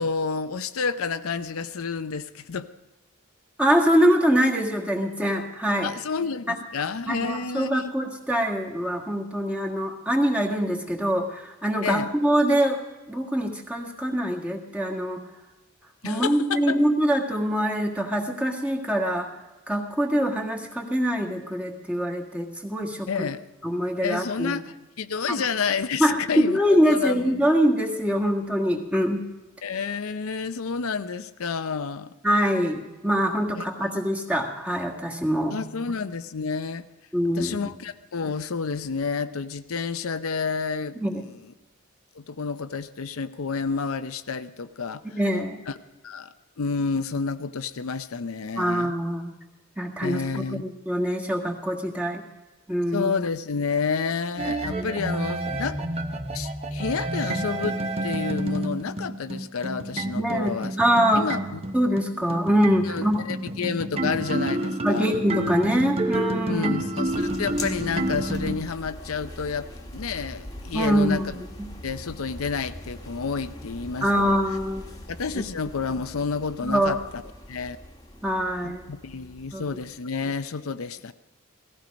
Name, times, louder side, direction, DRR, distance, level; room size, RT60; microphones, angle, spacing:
voice 1, 0.0-2.7 5.8-7.9 11.8-12.1 16.0-16.8 23.1-23.4 24.0-26.6 26.9-27.5 29.6-32.1 33.6-33.7 35.5-36.9 37.4-41.0 42.1-45.2 45.7-45.8 46.0-48.9 50.0-50.6 52.9-55.8 56.3-60.8 61.1-61.6 62.9-65.1 66.5-71.2 71.8-74.2 75.1-77.2 77.5-77.8 78.6-81.1, left 5 dB, 85° left, 11 dB, 0.6 m, -30 dB
voice 2, 3.6-5.9 6.5-6.6 7.1-12.8 13.1-15.2 16.0-19.3 19.7-23.3 23.6-24.5 25.3-25.4 26.0-29.2 32.2-35.6 37.1-37.7 40.9-41.2 45.1-45.6 48.6-49.3 49.8-52.2 52.7-53.1 54.7-54.9 60.2-61.3 61.7-63.2 64.8-66.7 70.7-71.7 74.0-74.8 76.6-76.9 78.2-78.8 79.5-79.6, equal, 5° right, 1 dB, 1.6 m, -24 dB
sound 1, 54.4-68.6, right 1 dB, 30° right, 1.0 m, -29 dB
sound 2, 67.1-80.0, left 1 dB, 15° left, 1.3 m, -42 dB
17.5 x 14.5 x 5.2 m, 1.1 s
head